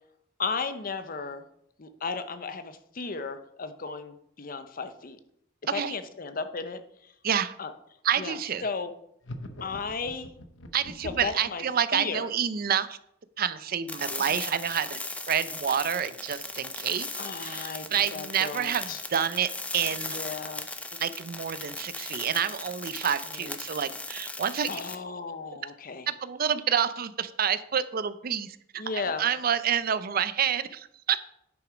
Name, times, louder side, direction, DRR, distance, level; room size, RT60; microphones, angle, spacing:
voice 1, 0.4-1.4 1.8-5.2 5.7-6.8 7.6-7.7 8.2-8.4 8.6-8.9 9.6-10.3 11.0-11.6 11.9-12.3 14.3-14.4 17.2-17.8 18.1-19.0 19.9-20.7 23.3-23.5 24.7-26.1 28.8-29.3, left 4 dB, 50° left, 10 dB, 0.8 m, -35 dB
voice 2, 7.2-7.5 8.0-8.7 10.7-13.0 13.4-15.0 15.3-20.2 21.0-24.8 26.1-31.4, right 8 dB, 50° right, 14 dB, 0.5 m, -28 dB
sound 1, 9.2-11.5, left 1 dB, 75° left, 0.9 m, -42 dB
sound 2, 13.9-24.9, left 2 dB, 5° left, 0.6 m, -38 dB
10.0 x 6.1 x 5.0 m, 0.74 s
head